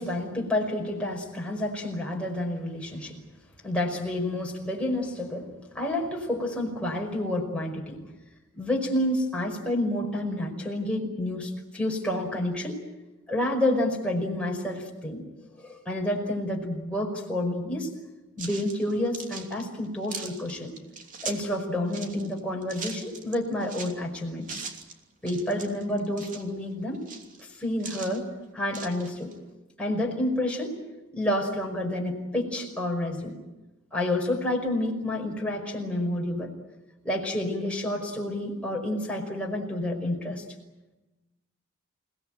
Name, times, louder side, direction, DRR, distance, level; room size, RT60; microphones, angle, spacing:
voice 1, 0.0-3.2 3.6-5.5 5.7-8.0 8.6-12.8 13.3-15.2 15.6-17.9 18.4-20.7 21.2-24.6 25.2-27.0 27.6-28.2 28.5-29.3 29.8-30.7 31.1-33.3 33.9-36.5 37.0-40.4, left 1 dB, 5° left, -1 dB, 5.3 m, -29 dB
sound 1, 18.4-21.5 21.9-24.0 24.4-24.9 25.3-26.5 26.9-28.2 28.7-29.3, right 5 dB, 40° right, 3.0 m, -40 dB
29.0 x 18.5 x 9.1 m, 1.1 s
head